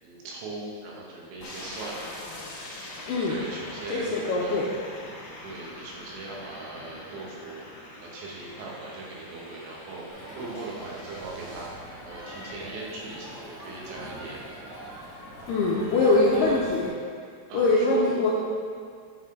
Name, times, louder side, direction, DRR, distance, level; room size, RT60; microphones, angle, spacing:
voice 1, 0.0-2.0 3.3-4.1 4.4-4.7 5.4-7.7 8.0-11.7 12.0-14.4 16.0-16.6 17.5-18.0, right 3 dB, 75° right, -3 dB, 3.5 m, -40 dB
sound 1, 1.4-11.7, left 2 dB, 65° left, 1.9 m, -43 dB
voice 2, 3.9-4.6 15.5-16.9 17.5-18.3, left 2 dB, 80° left, -4 dB, 2.3 m, -23 dB
Crowd, 10.1-16.9, right 1 dB, 35° right, 1.2 m, -42 dB
9.9 x 5.8 x 3.8 m, 2.1 s
omnidirectional pair, 5.4 m